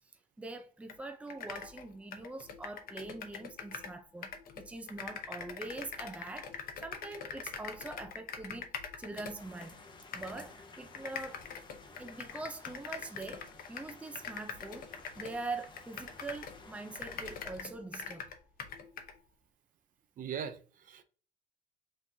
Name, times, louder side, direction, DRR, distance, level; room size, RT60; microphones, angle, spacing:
voice 1, 0.4-8.7 9.0-9.8 10.1-11.4 12.0-18.3, right 2 dB, 5° right, 0.5 m, -43 dB
sound 1, 0.9-1.0 1.3-4.0 4.2-9.7 10.1-10.5 10.9-16.6 16.9-19.2, left 6 dB, 60° left, 0.8 m, -43 dB
sound 2, 9.4-17.4, left 3 dB, 25° left, 0.8 m, -54 dB
voice 2, 20.2-21.0, right 7 dB, 55° right, 0.6 m, -40 dB
5.5 x 3.1 x 2.7 m
cardioid pair, 110°, 17 cm